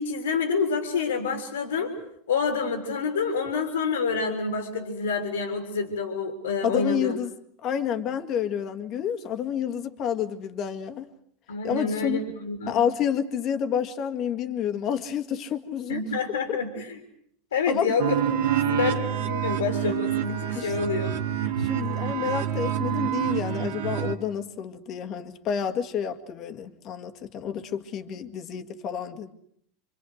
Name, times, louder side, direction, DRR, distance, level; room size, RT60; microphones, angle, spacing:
voice 1, 0.0-1.9 2.3-7.2 11.5-12.8 15.9-17.0 17.5-18.2 18.5-21.1, left 4 dB, 85° left, 5 dB, 3.5 m, -28 dB
voice 2, 6.6-7.3 7.6-11.1 11.6-12.2 12.7-16.1 16.5-16.6 17.7-18.0 20.6-20.7 21.6-29.3, left 8 dB, 45° left, 8 dB, 2.0 m, -29 dB
sound 1, 18.0-24.2, right 9 dB, 70° right, 1.8 m, -27 dB
27.0 x 25.0 x 6.5 m, 0.67 s
hypercardioid pair, 90°, 0 cm